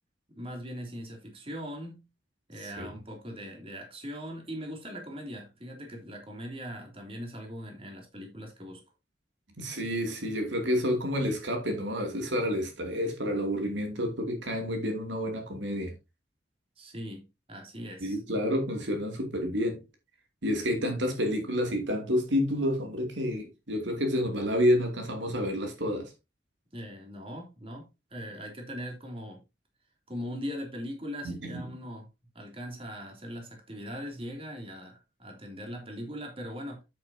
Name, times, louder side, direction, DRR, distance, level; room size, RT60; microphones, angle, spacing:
voice 1, 0.3-2.1 2.5-8.8 16.8-18.2 26.7-29.4 30.1-32.1 32.3-36.8, equal, 30° right, 3.1 m, -40 dB
voice 2, 9.6-15.9 18.0-19.8 20.4-26.1 31.2-31.6, equal, 80° right, 2.8 m, -29 dB
9.3 x 8.9 x 2.8 m
head